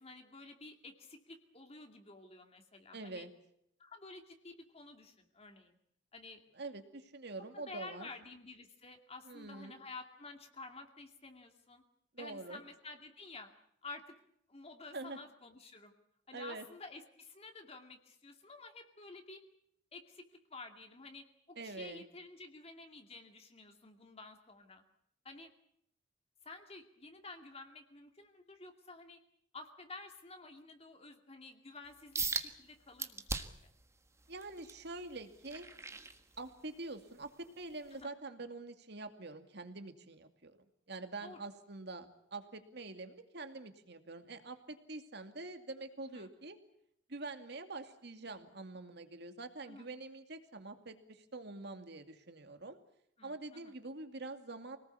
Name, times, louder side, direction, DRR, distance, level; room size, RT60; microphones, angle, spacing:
voice 1, 0.0-3.3 3.8-5.8 6.1-6.4 7.4-11.8 12.2-13.5 13.8-14.0 14.5-15.9 16.3-19.4 19.9-24.8 25.2-25.5 26.4-29.2 29.5-33.7 38.0-38.1 41.2-41.4 46.1-46.3 49.7-49.9 53.2-53.7, left 3 dB, 35° left, 4 dB, 2.5 m, -51 dB
voice 2, 2.9-3.3 6.5-8.1 9.2-9.7 12.1-12.6 14.9-15.2 16.3-16.6 21.6-22.0 34.3-35.7 36.4-37.3 37.6-40.6 40.9-46.6 47.1-52.8 53.2-54.8, right 3 dB, 65° right, 8 dB, 2.4 m, -45 dB
sound 1, 32.1-32.5 33.0-33.7 34.2-36.7 37.2-37.5 38.0-38.1, right 4 dB, 15° right, 1.5 m, -39 dB
25.5 x 19.0 x 8.4 m, 0.73 s
head